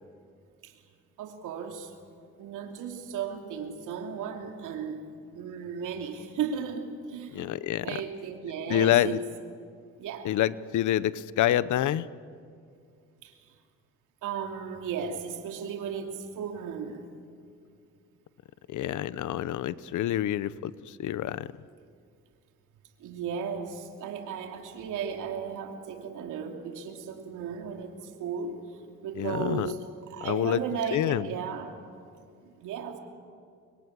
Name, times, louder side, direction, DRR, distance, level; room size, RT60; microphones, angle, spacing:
voice 1, 1.2-1.9 2.4-5.0 5.3-7.4 7.8-9.2 10.0-10.3 13.2-13.3 14.2-17.0 23.0-29.8 30.1-31.8 32.4-33.0, right 7 dB, 90° right, 3 dB, 2.9 m, -35 dB
voice 2, 7.3-8.0 8.7-9.2 10.2-12.1 18.7-21.5 29.2-29.7 30.2-30.6 30.9-31.3, left 12 dB, 75° left, 17 dB, 0.9 m, -27 dB
25.5 x 23.0 x 9.8 m, 2.3 s
cardioid pair, 90°, 30 cm